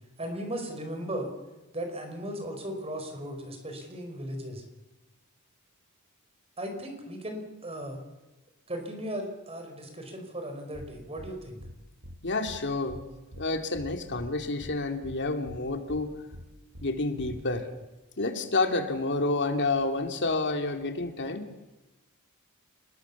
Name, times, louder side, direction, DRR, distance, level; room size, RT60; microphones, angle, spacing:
voice 1, 0.2-1.3 1.7-4.6 6.6-8.0 8.7-11.6, right 1 dB, 25° right, 5 dB, 5.1 m, -36 dB
sound 1, 10.7-10.9 11.2-11.3 11.6-11.7 12.0-12.2 12.5-12.6 12.9-13.0 13.3-13.4 13.7-14.3 14.6-14.7 15.0-15.2 15.5-15.6 15.9-16.0 16.3-16.4 16.7-16.9 17.2-17.4, equal, 80° right, 4.9 m, -44 dB
voice 2, 12.2-13.0 13.4-16.1 16.8-17.7 18.2-21.4, left 2 dB, 55° left, 6 dB, 2.6 m, -29 dB
28.5 x 20.0 x 7.2 m, 1.1 s
head